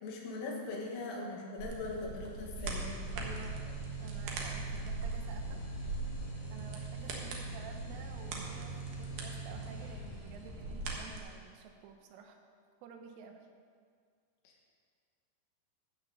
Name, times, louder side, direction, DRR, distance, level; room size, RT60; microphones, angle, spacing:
voice 1, 0.0-3.0 14.5-14.8, left 3 dB, 80° left, -1 dB, 4.4 m, -41 dB
sound 1, 1.6-11.2, right 3 dB, 65° right, 2.5 m, -42 dB
sound 2, 2.6-10.6, right 2 dB, 60° left, 2.7 m, -43 dB
voice 2, 3.2-5.6 6.5-12.4 12.8-13.5, right 6 dB, 80° right, 4 dB, 3.5 m, -51 dB
16.0 x 6.0 x 6.8 m, 2.1 s
omnidirectional pair, 5.7 m